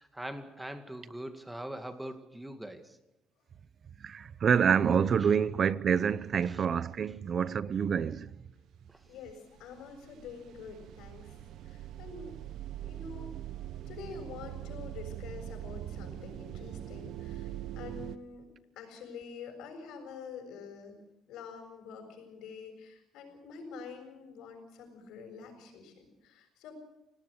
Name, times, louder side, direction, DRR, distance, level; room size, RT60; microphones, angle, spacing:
voice 1, 0.0-2.8, right 1 dB, 5° right, 2.2 m, -41 dB
voice 2, 4.0-8.3, right 7 dB, 40° right, 0.8 m, -27 dB
voice 3, 9.1-11.3 11.6-12.3 12.8-13.4 13.9-18.5 18.7-21.0 21.3-26.7, left 5 dB, 75° left, 6.6 m, -47 dB
sound 1, 9.1-9.3 9.6-18.2, right 12 dB, 65° right, 1.2 m, -42 dB
28.5 x 18.0 x 6.6 m
cardioid pair, 145°, 0 cm